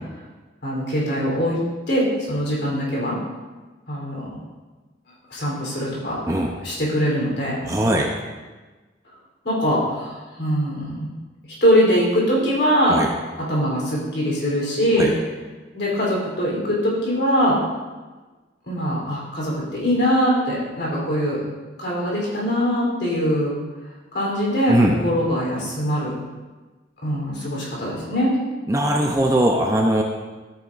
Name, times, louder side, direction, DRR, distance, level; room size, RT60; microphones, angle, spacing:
voice 1, 0.6-1.6 1.9-3.2 3.9-4.3 5.3-6.2 6.6-7.6 9.4-11.1 11.6-13.0 13.4-15.1 15.7-17.6 18.7-21.4 21.8-23.5 24.1-24.7 25.0-26.1 27.0-28.3, equal, 60° left, -4 dB, 3.5 m, -22 dB
voice 2, 7.6-8.1 12.9-13.1 15.0-15.1 24.7-25.0 28.7-30.0, right 1 dB, 15° right, 1 dB, 0.6 m, -20 dB
13.0 x 9.2 x 2.5 m, 1.3 s
head